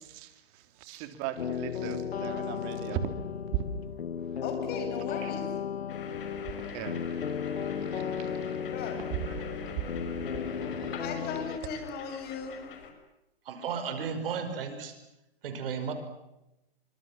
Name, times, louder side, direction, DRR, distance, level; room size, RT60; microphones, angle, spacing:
voice 1, 0.0-3.0 5.2-5.3 6.6-8.7 9.3-9.5 10.8-11.0, right 11 dB, 40° right, 3.4 m, -40 dB
sound 1, 1.4-11.6, left 7 dB, 85° left, 1.5 m, -35 dB
voice 2, 4.4-5.5 8.7-9.0 11.0-12.6, left 5 dB, 30° left, 7.9 m, -37 dB
sound 2, 5.9-12.9, left 6 dB, 60° left, 6.0 m, -43 dB
voice 3, 13.5-15.0 15.4-15.9, right 6 dB, 65° right, 5.5 m, -34 dB
27.5 x 25.5 x 7.4 m
hypercardioid pair, 135°, 31 cm